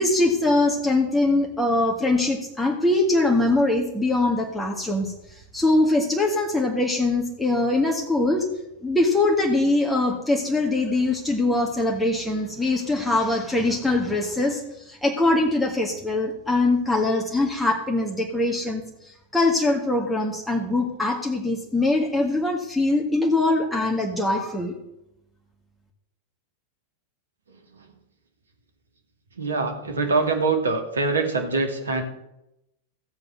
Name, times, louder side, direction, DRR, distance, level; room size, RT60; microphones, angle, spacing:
voice 1, 0.0-8.5 8.8-24.7, left 2 dB, 5° left, -1 dB, 1.7 m, -22 dB
voice 2, 29.4-32.0, right 3 dB, 70° right, 4 dB, 2.2 m, -24 dB
15.0 x 7.8 x 6.2 m, 0.88 s
figure-of-eight pair, 90°, 0 cm